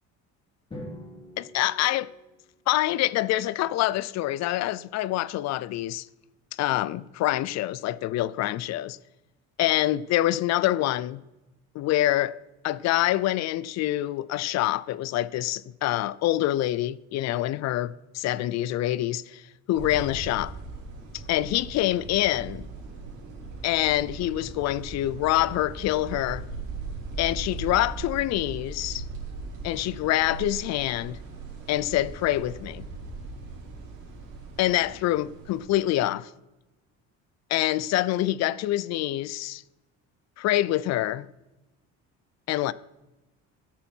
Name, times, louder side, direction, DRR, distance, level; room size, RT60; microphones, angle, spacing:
Drum, 0.7-2.8, left 1 dB, 15° left, 3.4 m, -44 dB
voice 1, 1.4-2.1 2.7-6.1 6.5-9.0 9.6-11.2 11.7-12.3 12.6-19.4 19.7-20.5 21.1-22.7 23.6-26.4 27.2-29.0 29.6-31.2 31.7-32.9 34.6-36.3 37.5-39.6 40.4-41.3 42.5-42.7, left 15 dB, 60° left, 0.5 m, -26 dB
sound 1, 19.7-35.7, right 3 dB, 80° right, 4.1 m, -39 dB
15.0 x 8.7 x 4.5 m
cardioid pair, 155°, 30 cm